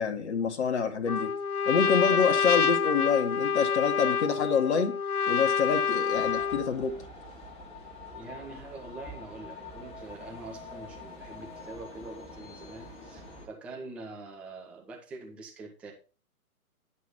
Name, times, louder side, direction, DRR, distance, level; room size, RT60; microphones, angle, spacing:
voice 1, 0.0-1.3 1.6-5.0 5.3-7.0, left 6 dB, 45° left, 1.5 m, -27 dB
Trumpet, 1.1-6.7, left 6 dB, 80° left, 0.8 m, -27 dB
sound 1, 6.1-13.5, left 2 dB, 15° left, 2.0 m, -45 dB
voice 2, 8.1-15.9, right 2 dB, 5° right, 0.6 m, -44 dB
10.5 x 6.2 x 4.2 m
figure-of-eight pair, 125°, 44 cm